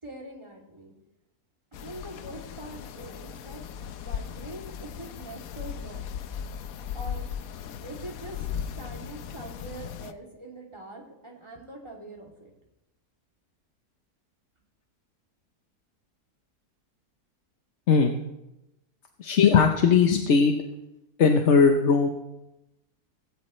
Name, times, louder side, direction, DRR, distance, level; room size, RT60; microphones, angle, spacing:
voice 1, 0.0-0.9 1.7-6.0 6.9-7.2 7.8-12.5, right 2 dB, 15° right, -2 dB, 2.9 m, -43 dB
sound 1, 1.7-10.1, left 8 dB, 65° left, 1.1 m, -37 dB
voice 2, 19.2-20.6 21.2-22.1, left 5 dB, 50° left, 4 dB, 1.1 m, -19 dB
17.5 x 16.0 x 3.3 m, 0.93 s
omnidirectional pair, 1.7 m